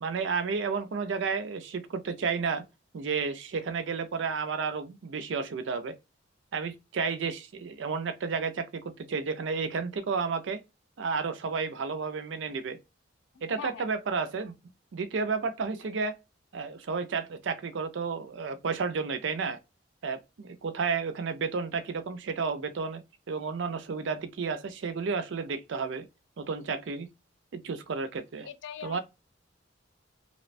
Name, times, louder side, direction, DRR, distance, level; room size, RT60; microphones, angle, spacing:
voice 1, 0.0-2.6 2.9-5.9 6.5-10.6 11.0-12.8 13.4-14.5 14.9-16.2 16.5-19.6 20.0-26.1 26.4-27.1 27.5-28.5 28.8-29.0, right 5 dB, 70° right, 0.4 m, -32 dB
voice 2, 13.5-13.8 28.5-29.0, left 7 dB, 65° left, 0.4 m, -41 dB
2.8 x 2.1 x 2.5 m
head